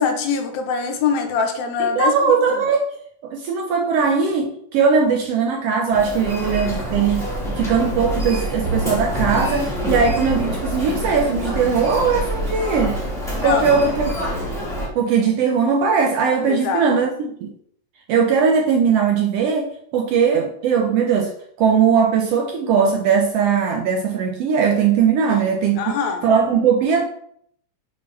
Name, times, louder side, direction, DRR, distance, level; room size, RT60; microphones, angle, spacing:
voice 1, 0.0-2.7 13.3-13.7 16.4-16.9 25.3-25.4 25.8-26.3, left 5 dB, 75° left, 2.0 m, -23 dB
voice 2, 2.0-2.9 3.2-7.3 7.6-13.0 13.4-14.1 14.9-17.5 18.1-21.3 21.6-25.8 26.2-27.0, right 6 dB, 70° right, 1.5 m, -19 dB
Human voice, 5.9-14.9, equal, ahead, 1.1 m, -26 dB
6.5 x 5.1 x 3.3 m
omnidirectional pair, 3.4 m